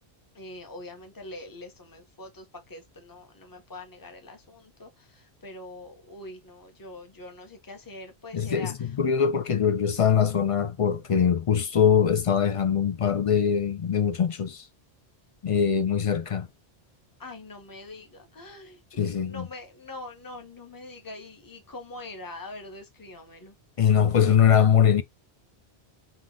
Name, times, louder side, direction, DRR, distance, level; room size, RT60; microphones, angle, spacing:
voice 1, 0.3-8.9 17.2-23.5, left 2 dB, 20° left, 1.0 m, -43 dB
voice 2, 8.3-14.7 15.4-16.5 19.0-19.5 23.8-25.0, left 8 dB, 50° left, 0.4 m, -22 dB
3.7 x 3.1 x 3.6 m
omnidirectional pair, 1.1 m